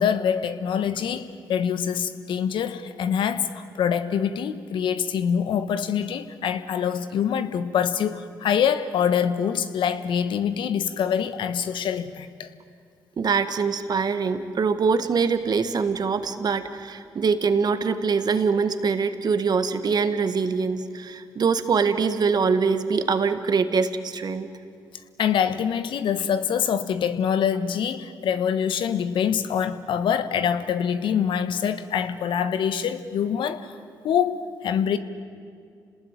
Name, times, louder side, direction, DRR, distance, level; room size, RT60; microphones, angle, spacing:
voice 1, 0.0-12.5 25.2-33.8 34.0-35.0, left 8 dB, 75° left, 11 dB, 1.3 m, -25 dB
voice 2, 13.2-24.5, right 5 dB, 50° right, 10 dB, 1.7 m, -23 dB
28.0 x 20.0 x 9.2 m, 2.2 s
supercardioid pair, 65°, 9 cm